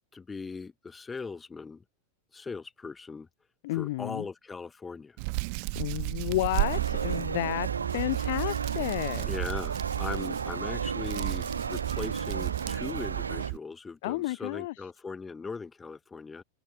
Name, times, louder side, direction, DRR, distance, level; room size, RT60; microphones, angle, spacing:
voice 1, 0.1-1.8 2.3-3.3 3.7-5.2 9.3-16.4, left 4 dB, 15° left, 1.1 m, -39 dB
voice 2, 3.6-4.3 5.7-9.3 14.0-14.7, left 18 dB, 50° left, 0.4 m, -31 dB
Hands, 5.2-13.6, right 36 dB, 45° right, 1.0 m, -33 dB
sound 1, 6.6-13.5, right 5 dB, 75° right, 0.3 m, -35 dB
figure-of-eight pair, 90°, 0 cm